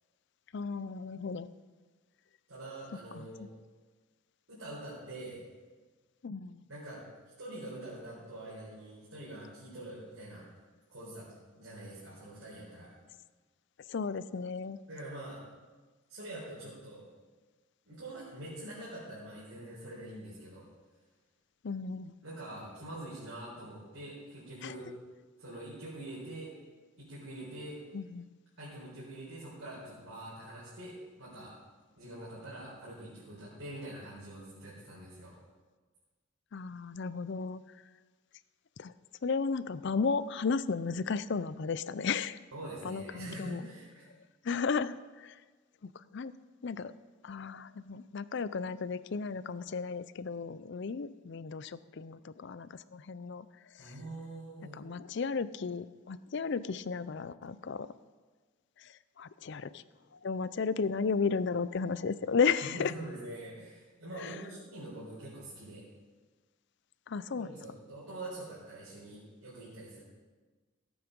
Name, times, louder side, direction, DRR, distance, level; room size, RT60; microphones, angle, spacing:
voice 1, 0.5-1.5 3.1-3.5 6.2-6.6 13.9-14.8 21.6-22.1 24.6-24.8 27.9-28.3 36.5-37.6 38.8-38.9 39.2-42.4 42.8-43.6 44.4-45.4 45.8-46.3 46.6-46.9 47.2-53.5 53.8-53.9 54.7-57.9 58.8-59.8 60.2-62.9 64.2-64.4 67.1-67.5, left 5 dB, 55° left, 16 dB, 0.4 m, -34 dB
voice 2, 2.5-3.4 4.5-5.4 6.7-7.0 7.4-10.4 10.9-11.3 11.5-12.9 14.9-15.4 16.1-17.0 17.8-20.7 22.2-24.9 25.4-26.5 27.0-27.8 28.6-31.5 32.0-35.4 42.5-44.1 53.8-54.8 62.6-65.8 67.3-70.0, right 1 dB, 70° right, -9 dB, 4.3 m, -45 dB
16.5 x 8.7 x 5.3 m, 1.4 s
head